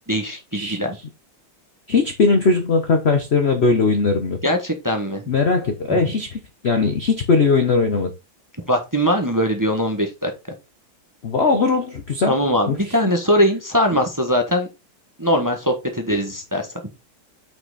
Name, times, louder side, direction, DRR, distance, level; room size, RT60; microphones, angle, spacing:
voice 1, 0.1-1.0 4.4-5.2 5.9-6.0 8.7-10.3 12.3-14.7 15.2-16.7, equal, 10° right, 1.0 m, -21 dB
voice 2, 1.9-4.4 5.3-8.1 11.2-12.3 12.7-12.9, left 4 dB, 55° left, 0.7 m, -19 dB
6.0 x 5.9 x 4.1 m
omnidirectional pair, 2.3 m